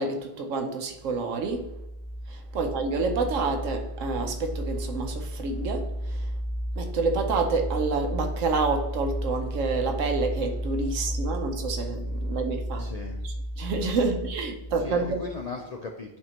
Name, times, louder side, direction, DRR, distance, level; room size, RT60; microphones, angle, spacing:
voice 1, 0.0-1.7 2.3-6.2 6.8-12.9 13.2-15.2, right 4 dB, 85° right, 1.2 m, -28 dB
sound 1, 0.9-15.4, equal, 25° right, 2.1 m, -33 dB
voice 2, 12.8-13.2 14.1-14.2 14.7-16.2, left 4 dB, 60° left, 0.4 m, -38 dB
10.5 x 3.5 x 2.9 m
omnidirectional pair, 1.3 m